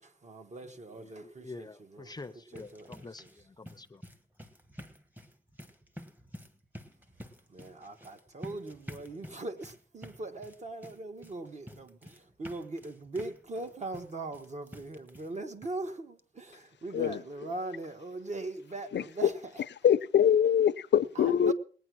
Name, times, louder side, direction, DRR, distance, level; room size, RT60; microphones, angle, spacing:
voice 1, 0.0-2.1 2.5-3.3 7.5-19.6 21.1-21.5, right 2 dB, 40° right, 1.4 m, -41 dB
voice 2, 1.0-4.0, left 3 dB, 20° left, 0.6 m, -47 dB
sound 1, 2.1-15.4 15.6-15.8 16.2-16.3 16.6-16.7, equal, 10° right, 1.1 m, -50 dB
voice 3, 19.8-21.5, left 9 dB, 75° left, 0.6 m, -23 dB
19.5 x 9.3 x 6.2 m
wide cardioid pair, 175°, 19 cm